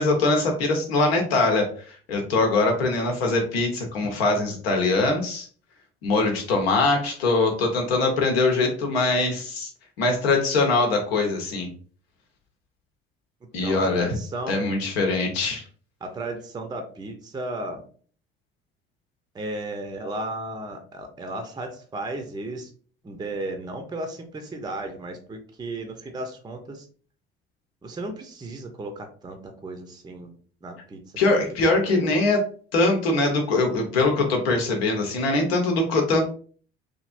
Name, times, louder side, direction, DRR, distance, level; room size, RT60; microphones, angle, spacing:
voice 1, 0.0-5.5 6.0-9.7 10.0-11.7 13.5-14.2 14.5-15.6 31.2-32.4 32.7-36.3, left 3 dB, 75° left, 3 dB, 0.8 m, -22 dB
voice 2, 13.6-14.7 16.0-17.8 19.3-22.7 23.0-26.9 27.8-30.3 30.6-31.0 31.2-31.4 31.6-32.1, right 2 dB, 15° right, 5 dB, 0.5 m, -34 dB
3.2 x 2.5 x 2.4 m, 0.43 s
figure-of-eight pair, 55°, 31 cm